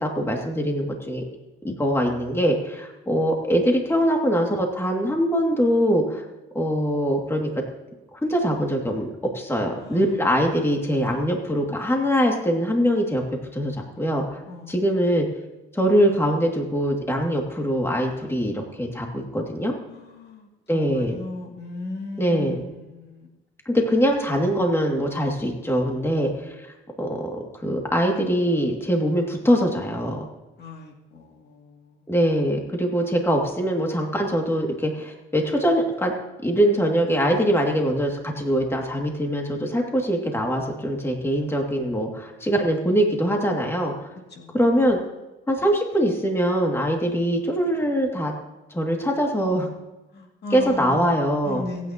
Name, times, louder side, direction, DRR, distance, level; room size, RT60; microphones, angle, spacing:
voice 1, 0.0-1.2 1.6-6.2 6.5-7.5 8.1-9.1 9.3-13.2 13.5-14.4 14.7-15.3 15.7-19.7 20.7-21.2 22.2-22.6 23.7-26.7 27.0-30.2 32.1-36.1 36.4-44.1 44.5-45.0 45.5-48.3 48.7-49.7 50.5-51.6, equal, 10° left, 1 dB, 2.4 m, -23 dB
voice 2, 19.9-23.3 30.6-32.1 44.3-44.6 50.1-51.2 51.4-51.9, left 2 dB, 55° left, 1 dB, 2.5 m, -37 dB
26.5 x 9.5 x 2.9 m, 1.1 s
cardioid pair, 90°, 20 cm